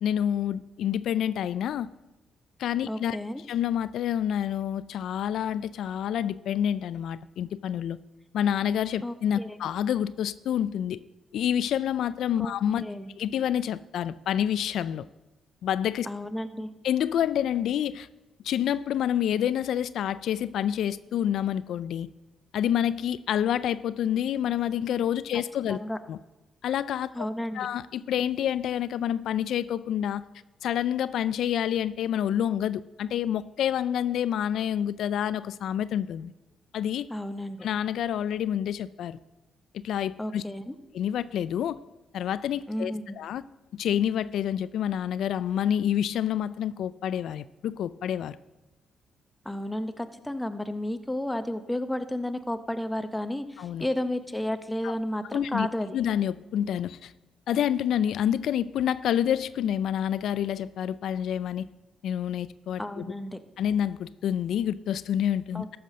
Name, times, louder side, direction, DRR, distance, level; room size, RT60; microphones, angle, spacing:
voice 1, 0.0-1.9 2.6-3.2 3.5-8.0 8.3-11.0 11.3-12.8 13.2-15.0 15.6-16.1 16.8-18.1 18.4-22.1 22.5-25.8 26.1-26.2 26.6-27.3 27.5-30.2 30.6-36.3 36.7-37.1 37.6-39.2 39.7-40.4 40.9-41.8 42.1-43.4 43.7-48.4 53.6-53.9 54.8-54.9 55.3-55.7 55.9-57.1 57.5-61.7 62.0-63.0 63.6-65.8, left 10 dB, 75° left, 16 dB, 0.3 m, -28 dB
voice 2, 2.9-3.4 9.0-9.6 12.4-13.1 16.1-16.7 25.3-25.4 25.7-26.0 27.1-27.7 37.1-37.7 40.2-40.8 42.7-43.2 49.4-56.0 62.8-63.4 65.5-65.8, left 1 dB, 5° left, 9 dB, 0.8 m, -32 dB
13.5 x 5.8 x 6.3 m, 1.1 s
cardioid pair, 90°, 0 cm